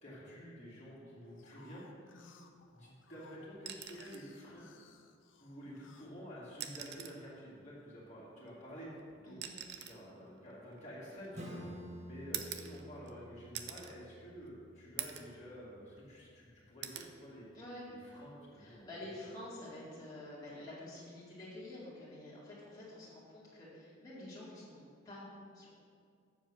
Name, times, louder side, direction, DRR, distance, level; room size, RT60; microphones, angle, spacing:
voice 1, 0.0-1.8 2.7-4.7 5.4-8.9 9.2-11.7 12.1-17.5 17.9-18.9, equal, 35° left, -8 dB, 2.4 m, -50 dB
sound 1, 1.3-7.0 7.5-8.2, left 5 dB, 65° left, 0.7 m, -63 dB
voice 2, 2.1-2.4 9.2-9.5 17.5-17.8 18.6-25.7, left 1 dB, 20° left, -10 dB, 2.4 m, -49 dB
sound 2, 3.6-4.3 5.7-5.8 6.5-7.3 8.4-11.5 12.3-13.2 13.5-14.0 14.4-14.5 15.0-15.4 15.8-16.4 16.8-17.1 18.6-18.8, right 10 dB, 60° right, 0.6 m, -45 dB
Acoustic guitar / Strum, 11.3-16.6, equal, 35° right, 1.2 m, -51 dB
7.4 x 7.3 x 6.2 m, 2.2 s
head